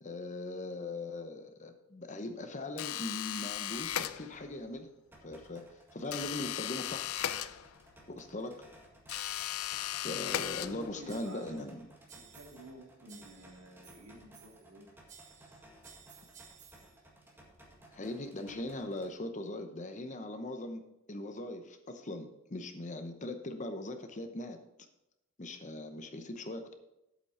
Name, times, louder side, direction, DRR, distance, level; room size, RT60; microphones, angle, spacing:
voice 1, 0.0-4.9 5.2-7.2 8.1-8.6 10.0-11.8 17.9-20.8 21.1-24.6 25.4-26.7, left 2 dB, 35° left, 7 dB, 0.8 m, -40 dB
sound 1, 2.8-4.6 6.1-8.0 9.1-11.1, left 11 dB, 85° left, 0.4 m, -37 dB
sound 2, 5.1-19.1, right 1 dB, 10° right, 1.7 m, -58 dB
sound 3, 9.1-9.7 10.3-10.7 11.1-11.7 12.1-12.8 13.1-14.7 15.1-17.0, right 8 dB, 35° right, 0.9 m, -57 dB
voice 2, 10.1-11.7 12.1-14.9, right 1 dB, 80° right, 0 dB, 2.4 m, -50 dB
8.3 x 8.1 x 4.3 m, 0.88 s
head